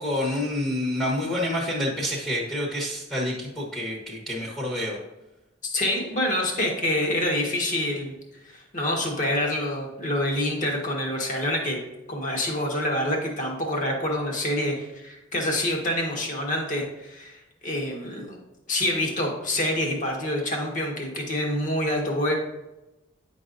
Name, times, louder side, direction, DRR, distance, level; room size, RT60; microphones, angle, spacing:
voice 1, 0.0-5.0, left 1 dB, ahead, -5 dB, 1.2 m, -28 dB
voice 2, 5.6-8.1 8.4-11.8 12.1-18.4 18.7-22.3, left 1 dB, 40° left, 0 dB, 1.4 m, -27 dB
9.5 x 5.4 x 2.6 m, 0.99 s
head